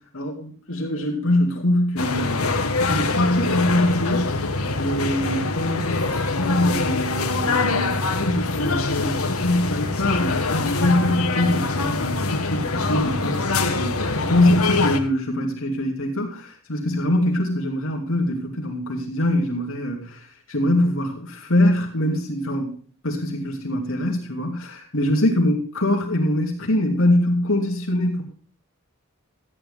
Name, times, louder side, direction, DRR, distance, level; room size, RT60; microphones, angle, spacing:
voice 1, 0.1-4.5 4.8-22.8 23.0-28.2, left 1 dB, 65° left, 0 dB, 2.6 m, -23 dB
sound 1, 2.0-15.0, left 3 dB, 80° left, 1.6 m, -24 dB
13.5 x 9.8 x 3.6 m, 0.44 s
head